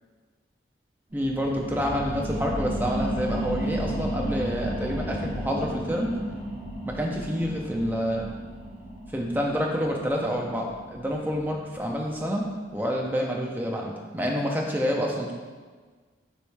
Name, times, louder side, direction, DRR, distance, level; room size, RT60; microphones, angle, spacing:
voice 1, 1.1-6.2 6.8-8.3 9.1-12.5 12.7-15.3, equal, 10° right, 0 dB, 0.4 m, -28 dB
sound 1, 1.1-12.3 12.7-12.8, right 1 dB, 65° right, 1.5 m, -33 dB
4.5 x 3.1 x 3.2 m, 1.5 s
head